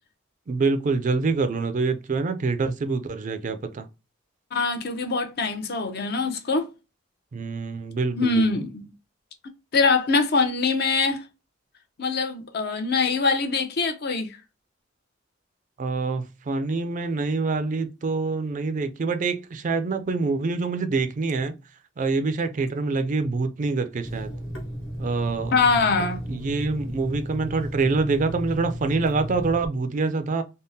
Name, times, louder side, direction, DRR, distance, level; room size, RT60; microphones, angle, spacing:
voice 1, 0.5-3.9 7.3-8.5 15.8-21.5 22.0-24.3 25.0-25.5 26.3-30.4, right 3 dB, 40° right, 0.4 m, -26 dB
voice 2, 4.5-6.7 8.2-8.9 9.7-11.2 12.0-14.4 25.5-26.2, left 4 dB, 55° left, 0.6 m, -23 dB
Water tap faucet / Sink (filling or washing), 24.0-29.6, equal, 85° left, 1.4 m, -34 dB
3.5 x 2.0 x 2.7 m
head